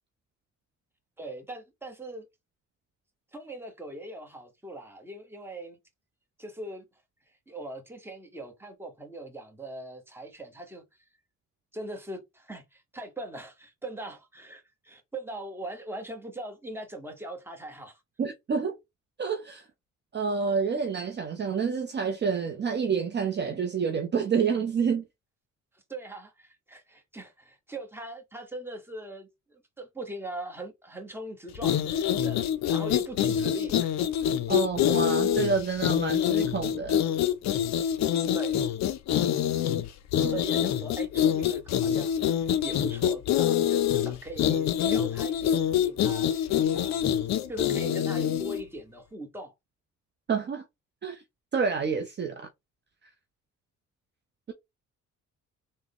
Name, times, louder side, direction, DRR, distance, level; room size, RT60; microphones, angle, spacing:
voice 1, 1.2-2.2 3.3-5.8 6.4-6.9 7.5-10.8 11.7-18.0 25.7-33.9 38.3-38.6 40.3-46.3 46.7-47.2 47.5-49.5, right 1 dB, 10° right, 1.0 m, -40 dB
voice 2, 18.2-18.7 19.2-19.7 20.1-25.1 34.5-37.0 40.2-40.3 50.3-50.6 51.0-51.2 51.5-52.5, right 6 dB, 35° right, 0.6 m, -28 dB
sound 1, 31.6-48.6, left 10 dB, 65° left, 0.5 m, -26 dB
3.5 x 2.1 x 3.5 m
cardioid pair, 90°, 30 cm